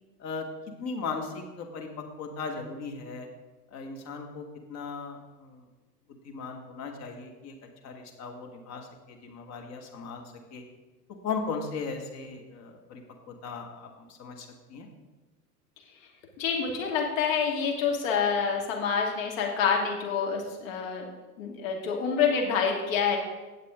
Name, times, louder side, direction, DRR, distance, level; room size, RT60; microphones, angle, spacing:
voice 1, 0.8-3.3 3.7-5.6 6.1-7.6 7.8-10.2 10.5-10.6 11.2-14.9, left 4 dB, 35° left, 3 dB, 1.9 m, -37 dB
voice 2, 16.4-21.1 21.4-23.2, left 6 dB, 55° left, 0 dB, 2.4 m, -27 dB
17.5 x 6.7 x 3.8 m, 1.2 s
figure-of-eight pair, 90°, 48 cm